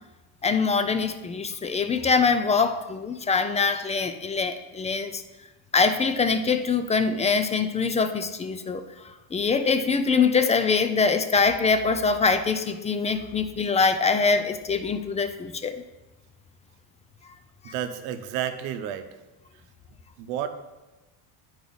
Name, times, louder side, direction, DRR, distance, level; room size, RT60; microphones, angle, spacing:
voice 1, 0.4-5.2 5.7-8.8 9.3-15.8 17.7-17.8, left 5 dB, 15° left, 9 dB, 0.3 m, -23 dB
voice 2, 17.6-19.1 20.2-20.5, right 10 dB, 80° right, 9 dB, 0.9 m, -31 dB
9.2 x 4.8 x 3.9 m, 1.1 s
supercardioid pair, 105°, 48 cm